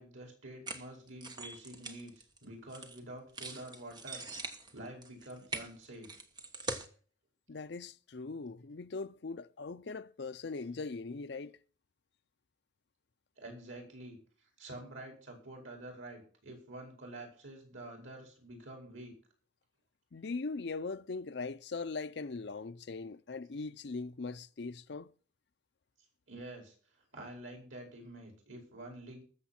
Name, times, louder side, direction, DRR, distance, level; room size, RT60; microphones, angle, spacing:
voice 1, 0.0-6.1 13.4-14.2 14.6-19.1 26.3-26.7 27.1-29.2, right 1 dB, 85° right, 5.2 m, -48 dB
sound 1, 0.7-3.0 3.3-6.9, right 3 dB, 20° right, 1.1 m, -42 dB
voice 2, 7.5-11.5 20.1-25.1, left 4 dB, 60° left, 0.5 m, -40 dB
20.5 x 7.2 x 4.3 m
head